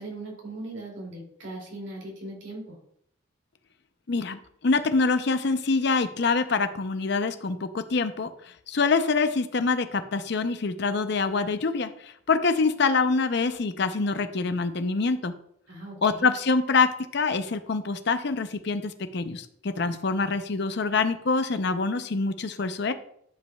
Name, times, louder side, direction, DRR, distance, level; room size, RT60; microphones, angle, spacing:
voice 1, 0.0-2.8 15.7-16.3, right 2 dB, 70° right, -1 dB, 2.5 m, -39 dB
voice 2, 4.1-15.3 16.0-22.9, left 4 dB, 60° left, 10 dB, 0.6 m, -25 dB
12.0 x 5.3 x 2.3 m, 0.70 s
head